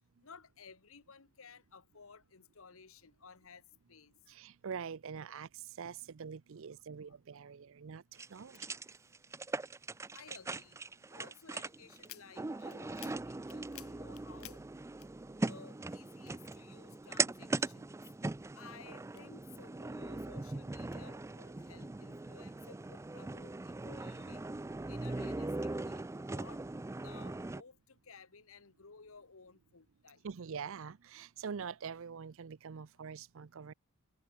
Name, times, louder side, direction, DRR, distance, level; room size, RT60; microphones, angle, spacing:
voice 1, 0.2-3.6 3.9-4.1 10.1-10.8 11.1-14.6 15.4-17.9 18.5-24.5 24.9-26.6 27.0-30.2, left 5 dB, 65° left, 1.3 m, -56 dB
voice 2, 4.3-8.7 30.2-33.7, right 6 dB, 65° right, 0.5 m, -44 dB
sound 1, 8.2-27.6, right 3 dB, 15° right, 0.3 m, -40 dB
sound 2, 12.0-15.7 15.9-17.2 17.7-19.8 20.2-21.0, left 14 dB, 85° left, 3.1 m, -55 dB
head